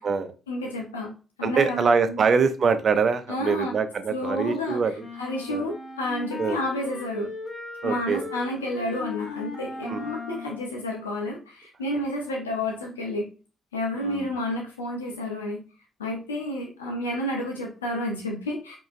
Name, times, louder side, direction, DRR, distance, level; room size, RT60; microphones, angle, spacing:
voice 1, 0.5-1.1 1.4-2.3 3.3-3.7 4.1-4.9 5.2-7.3 7.8-13.3 13.7-15.6 16.0-18.8, left 1 dB, 90° left, -1 dB, 0.8 m, -30 dB
voice 2, 1.4-4.9 5.5-5.6 6.4-6.6 7.8-8.2 9.9-10.0 14.0-14.3, right 5 dB, 50° right, 10 dB, 0.5 m, -24 dB
sound 1, 5.0-10.7, left 4 dB, 50° left, 1.0 m, -38 dB
4.8 x 2.9 x 2.5 m, 0.34 s
hypercardioid pair, 40°, 0 cm